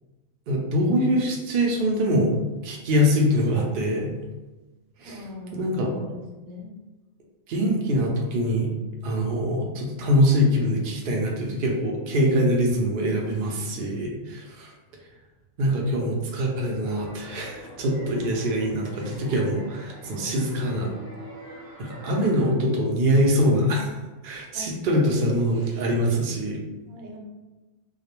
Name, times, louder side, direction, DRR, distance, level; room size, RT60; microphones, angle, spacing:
voice 1, 0.5-2.4 2.6-4.1 5.0-5.2 5.5-6.0 7.5-8.7 9.0-14.7 15.6-20.9 21.8-24.0 24.2-26.6, equal, 70° right, -1 dB, 0.5 m, -23 dB
voice 2, 5.0-5.8 6.1-6.7 24.5-25.0 26.9-27.2, left 2 dB, 85° right, 0 dB, 1.0 m, -41 dB
sound 1, 16.7-22.5, right 1 dB, 20° right, 0.7 m, -44 dB
2.3 x 2.1 x 2.9 m, 1.1 s
omnidirectional pair, 1.4 m